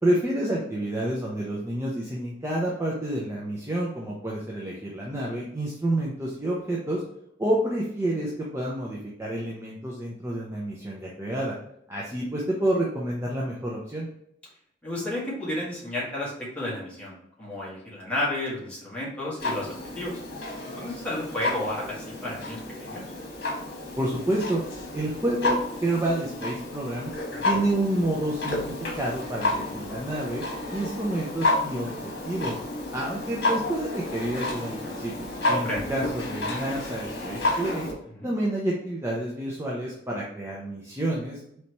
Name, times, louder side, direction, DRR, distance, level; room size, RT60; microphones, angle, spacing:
voice 1, 0.0-7.0 7.4-11.6 11.9-14.1 24.0-24.6 24.9-27.1 27.4-30.4 30.7-32.6 32.9-37.9 38.2-41.6, right 1 dB, 15° right, -4 dB, 0.6 m, -29 dB
voice 2, 14.8-20.2 20.7-23.0 27.3-27.6 35.6-35.9 38.2-38.3, left 1 dB, 5° left, -7 dB, 1.6 m, -32 dB
Clock, 19.4-37.9, left 2 dB, 60° left, 1.3 m, -31 dB
4.1 x 3.3 x 3.0 m, 0.73 s
head